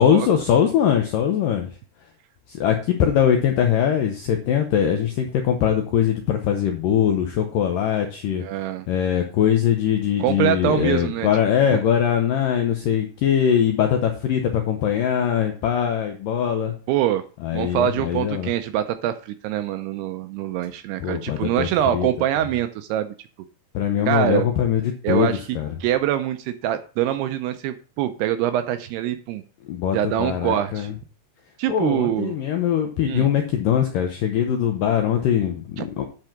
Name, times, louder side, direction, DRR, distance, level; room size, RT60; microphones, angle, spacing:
voice 1, 0.0-1.7 2.5-8.4 8.9-16.7 17.4-18.5 21.0-21.7 21.9-22.1 23.7-25.7 29.7-30.9 31.7-36.0, left 9 dB, 75° left, 4 dB, 2.0 m, -21 dB
voice 2, 8.4-8.9 10.2-11.3 11.7-11.8 16.9-17.2 17.5-23.1 24.1-24.5 25.0-25.4 25.8-29.4 29.9-30.9 31.6-32.4 33.1-33.3 35.8-35.9, right 11 dB, 80° right, 9 dB, 2.4 m, -24 dB
10.5 x 4.6 x 5.8 m, 0.38 s
omnidirectional pair, 5.1 m